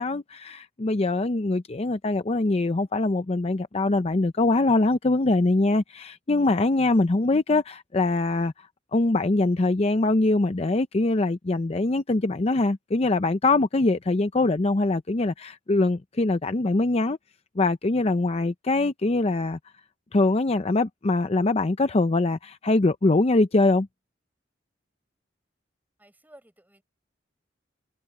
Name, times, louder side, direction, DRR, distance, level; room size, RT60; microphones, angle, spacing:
voice 1, 0.0-17.2 17.6-19.6 20.1-23.9, left 2 dB, 35° left, 0.6 m, -23 dB
voice 2, 26.0-26.8, right 1 dB, 10° right, 5.6 m, -54 dB
head